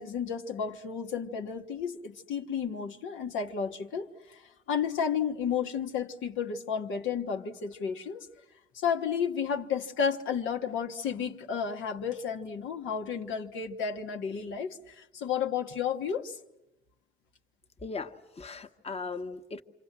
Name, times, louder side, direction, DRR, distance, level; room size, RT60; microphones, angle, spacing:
voice 1, 0.0-8.3 8.7-16.4, left 7 dB, 80° left, 1.4 m, -32 dB
voice 2, 17.8-19.6, left 4 dB, 30° left, 1.2 m, -38 dB
28.0 x 26.0 x 7.5 m
cardioid pair, 90°, 20 cm